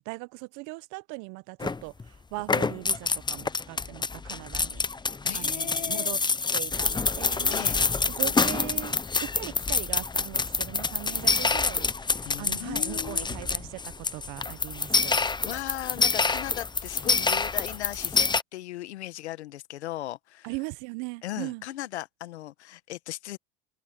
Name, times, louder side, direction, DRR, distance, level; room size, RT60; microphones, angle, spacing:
voice 1, 0.0-1.9 2.3-4.8 5.3-6.2 6.5-7.6 8.1-9.0 9.2-15.2 20.4-21.6, right 26 dB, 65° right, 1.2 m, -39 dB
sound 1, 1.6-2.1 2.4-18.4, left 4 dB, 15° left, 0.8 m, -27 dB
voice 2, 5.2-6.1 7.5-7.8 12.2-13.3 15.1-20.5 21.2-23.4, left 14 dB, 90° left, 1.8 m, -37 dB
open air
hypercardioid pair, 85°, 32 cm